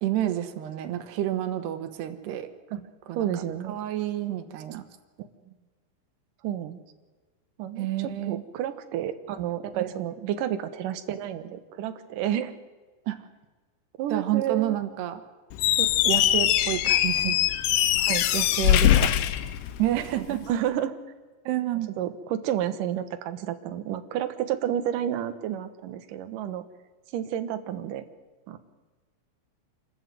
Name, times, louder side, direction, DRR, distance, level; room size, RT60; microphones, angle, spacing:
voice 1, 0.0-2.5 3.1-4.9 7.8-8.4 9.7-9.9 13.1-13.2 14.1-15.2 16.0-17.4 19.8-20.4 21.5-21.9, right 13 dB, 85° right, 9 dB, 3.5 m, -29 dB
voice 2, 3.2-3.8 6.4-6.8 7.6-12.6 14.0-14.8 15.8-15.9 18.0-19.1 20.3-21.0 22.0-26.6 27.1-28.0 28.5-28.6, right 10 dB, 65° right, 9 dB, 2.5 m, -30 dB
Squeak, 15.5-20.2, left 12 dB, 90° left, 3.1 m, -22 dB
26.5 x 13.5 x 9.3 m, 1.3 s
omnidirectional pair, 4.7 m